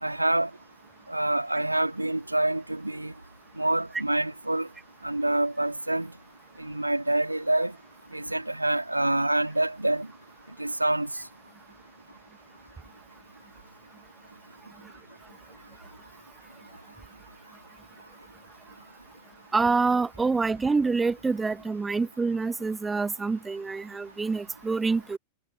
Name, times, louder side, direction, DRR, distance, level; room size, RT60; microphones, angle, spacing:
voice 1, 0.0-0.5 1.1-3.1 3.6-4.7 5.0-6.1 6.6-7.7 8.1-10.1 10.6-11.1, right 1 dB, 85° right, 2.7 m, -26 dB
voice 2, 19.5-25.2, right 4 dB, 10° right, 1.5 m, -26 dB
figure-of-eight pair, 90°, 0 cm